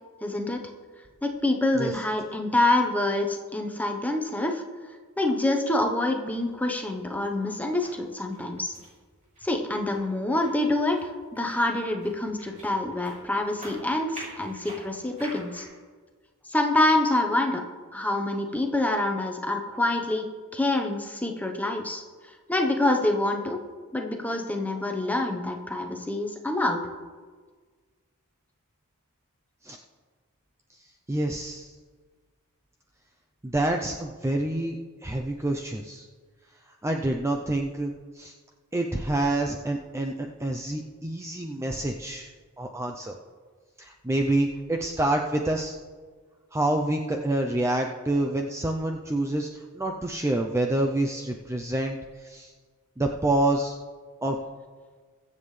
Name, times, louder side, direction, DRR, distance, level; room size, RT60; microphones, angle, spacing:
voice 1, 0.2-0.6 1.2-4.6 5.2-8.7 9.4-15.7 16.5-17.6 17.9-20.3 20.5-22.0 22.5-23.6 23.9-26.8, left 2 dB, 5° left, 4 dB, 0.9 m, -26 dB
sound 1, 6.4-15.6, right 1 dB, 35° right, 3.9 m, -48 dB
voice 2, 31.1-31.7 33.4-36.1 36.8-38.3 38.7-42.3 42.6-43.2 43.8-45.8 46.5-52.5 53.0-53.8 54.2-54.4, right 1 dB, 15° right, 2 dB, 0.5 m, -27 dB
22.0 x 7.5 x 3.3 m, 1.5 s
head